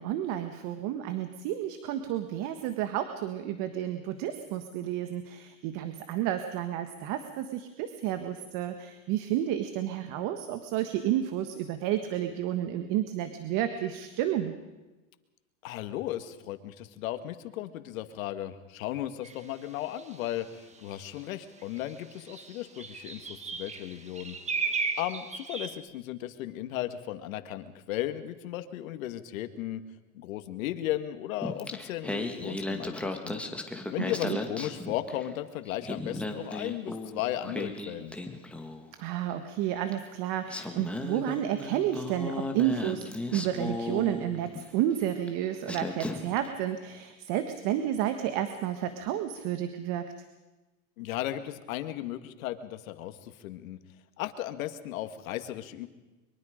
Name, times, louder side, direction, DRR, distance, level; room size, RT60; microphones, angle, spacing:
voice 1, 0.0-14.6 34.2-34.4 39.0-50.1, right 11 dB, 50° right, 8 dB, 1.5 m, -31 dB
voice 2, 15.6-24.4 25.0-29.8 30.1-33.4 33.9-38.2 51.0-53.8 54.2-55.9, left 13 dB, 75° left, 9 dB, 1.9 m, -35 dB
sound 1, 19.2-19.4 20.0-20.3 21.2-21.3 21.6-25.7, right 4 dB, 15° right, 1.7 m, -35 dB
Singing, 31.4-35.4 35.7-38.9 39.9-40.0 40.5-44.7 45.3-45.4 45.7-46.5, left 2 dB, 5° left, 1.7 m, -36 dB
23.0 x 23.0 x 5.1 m, 1.1 s
supercardioid pair, 130°, 41 cm